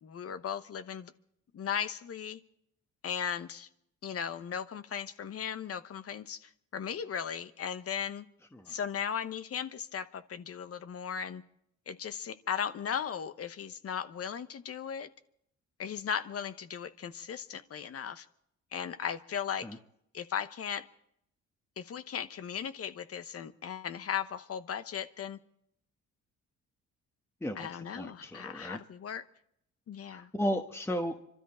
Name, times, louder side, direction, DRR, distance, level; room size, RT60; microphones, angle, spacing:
voice 1, 0.0-1.1 1.5-2.4 3.0-3.7 4.0-8.2 8.7-11.4 11.9-15.1 15.8-18.3 18.7-19.8 20.1-20.8 21.8-25.4 27.5-29.2 29.9-30.3, left 8 dB, 50° left, 12 dB, 1.0 m, -37 dB
voice 2, 27.4-28.8 30.1-31.2, equal, 10° left, 5 dB, 1.2 m, -35 dB
25.5 x 13.0 x 4.3 m, 0.73 s
cardioid pair, 90°, 30 cm